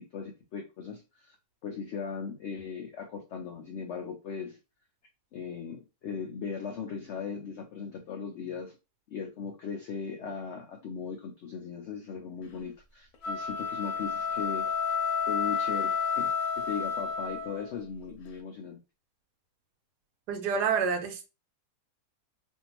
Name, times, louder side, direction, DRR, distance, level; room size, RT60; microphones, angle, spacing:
voice 1, 0.0-1.4 1.6-4.6 5.3-8.8 9.1-14.7 15.3-18.8, left 6 dB, 85° left, 0.6 m, -38 dB
sound 1, 13.1-17.7, left 6 dB, 70° left, 1.1 m, -30 dB
voice 2, 20.3-21.3, right 6 dB, 80° right, 1.2 m, -28 dB
2.6 x 2.6 x 2.9 m
omnidirectional pair, 1.8 m